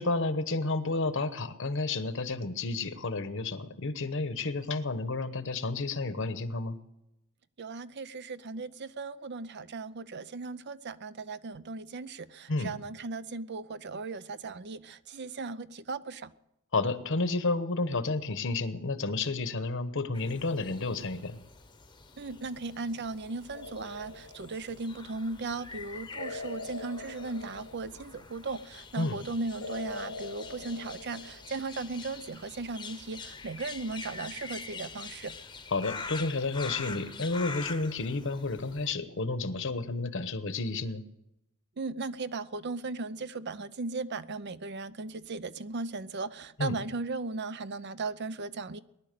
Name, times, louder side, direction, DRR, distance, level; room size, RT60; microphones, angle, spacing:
voice 1, 0.0-6.8 12.5-12.7 16.7-21.4 29.0-29.2 35.7-41.0 46.6-46.8, left 3 dB, 65° left, 1.1 m, -31 dB
voice 2, 7.6-16.3 22.2-35.3 41.8-48.8, right 3 dB, 55° right, 0.6 m, -37 dB
sound 1, 20.1-38.9, left 4 dB, 20° left, 0.9 m, -45 dB
sound 2, 23.5-24.9 26.2-28.3 29.6-31.8, left 3 dB, 90° left, 0.9 m, -43 dB
19.0 x 11.0 x 6.7 m
head